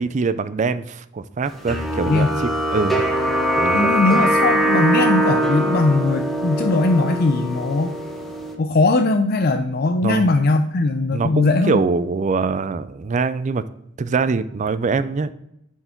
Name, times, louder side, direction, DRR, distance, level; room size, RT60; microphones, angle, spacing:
voice 1, 0.0-3.0 3.6-3.9 10.0-10.3 11.1-13.6 14.0-15.3, right 4 dB, 35° right, 13 dB, 0.4 m, -23 dB
sound 1, 1.7-8.5, right 1 dB, ahead, 1.0 m, -21 dB
voice 2, 3.7-8.0 8.6-11.8, left 3 dB, 50° left, 6 dB, 0.5 m, -19 dB
10.0 x 4.5 x 4.4 m, 0.77 s
head